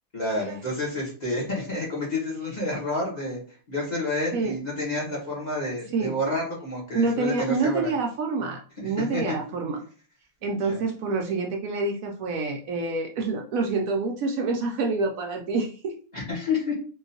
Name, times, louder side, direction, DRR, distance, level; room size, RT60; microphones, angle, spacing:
voice 1, 0.1-3.4 3.7-7.9 8.8-9.4 10.4-10.8 16.1-16.7, left 2 dB, 30° left, -4 dB, 1.4 m, -29 dB
voice 2, 6.9-9.8 10.4-15.9, right 3 dB, 70° right, 2 dB, 0.9 m, -27 dB
3.7 x 2.6 x 2.7 m, 0.40 s
omnidirectional pair, 1.6 m